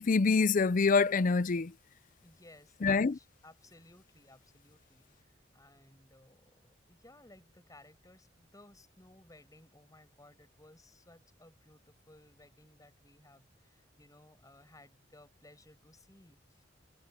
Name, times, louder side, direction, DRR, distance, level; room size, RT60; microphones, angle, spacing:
voice 1, 0.0-1.7 2.8-3.1, left 4 dB, 45° left, 0.5 m, -26 dB
voice 2, 2.2-16.7, left 1 dB, 20° left, 6.1 m, -59 dB
head